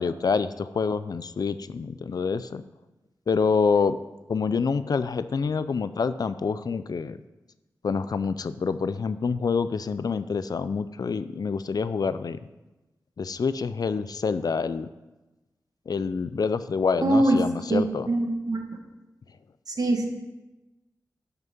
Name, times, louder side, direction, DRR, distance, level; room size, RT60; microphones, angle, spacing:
voice 1, 0.0-2.6 3.3-4.0 4.3-7.2 7.8-12.4 13.2-14.9 15.9-18.1, left 5 dB, 70° left, 13 dB, 0.5 m, -27 dB
voice 2, 17.0-17.4 17.7-18.6 19.7-20.1, right 2 dB, 65° right, 3 dB, 1.8 m, -23 dB
12.0 x 6.0 x 5.4 m, 1.1 s
cardioid pair, 55°, 7 cm